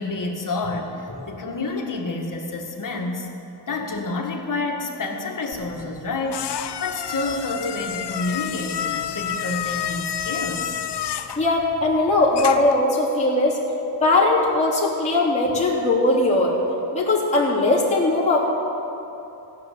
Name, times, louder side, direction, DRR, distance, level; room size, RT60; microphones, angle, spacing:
voice 1, 0.0-3.3 3.7-10.8, left 3 dB, 45° left, 0 dB, 2.0 m, -29 dB
sound 1, 5.5-12.8, left 9 dB, 70° left, 0.7 m, -30 dB
voice 2, 11.4-13.6 14.0-16.6 16.9-18.4, left 2 dB, 15° left, -7 dB, 3.2 m, -19 dB
15.5 x 6.2 x 9.1 m, 2.9 s
cardioid pair, 75°, 43 cm